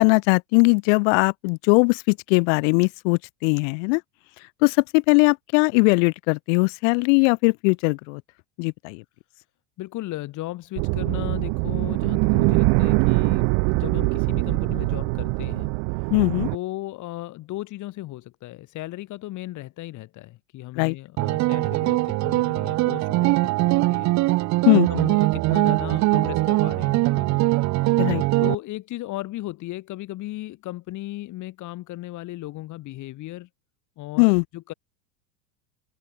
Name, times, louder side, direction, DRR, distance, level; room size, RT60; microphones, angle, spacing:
voice 1, 0.0-4.0 4.6-8.2 8.6-9.0 16.1-16.5 20.8-21.0 24.7-24.9 28.0-28.2 34.2-34.4, left 35 dB, 65° left, 0.6 m, -20 dB
voice 2, 9.8-15.7 16.5-24.1 24.7-27.4 28.4-33.5 34.0-34.7, left 17 dB, 50° left, 6.8 m, -36 dB
sound 1, 10.8-16.6, right 40 dB or more, 65° right, 1.4 m, -23 dB
sound 2, 21.2-28.5, right 19 dB, 45° right, 1.1 m, -21 dB
supercardioid pair, 135°, 38 cm